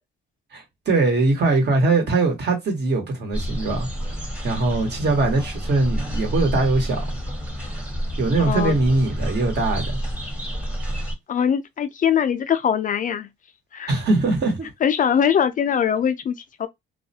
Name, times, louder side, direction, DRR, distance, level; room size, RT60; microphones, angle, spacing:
voice 1, 0.5-3.9 4.4-7.0 8.2-10.0 13.9-14.7, right 3 dB, 60° right, 1.2 m, -21 dB
sound 1, 3.3-11.1, equal, 5° right, 0.8 m, -29 dB
voice 2, 8.4-8.8 11.3-13.3 13.7-13.9 14.8-16.7, left 8 dB, 45° left, 0.4 m, -22 dB
2.4 x 2.2 x 2.7 m
cardioid pair, 90°, 20 cm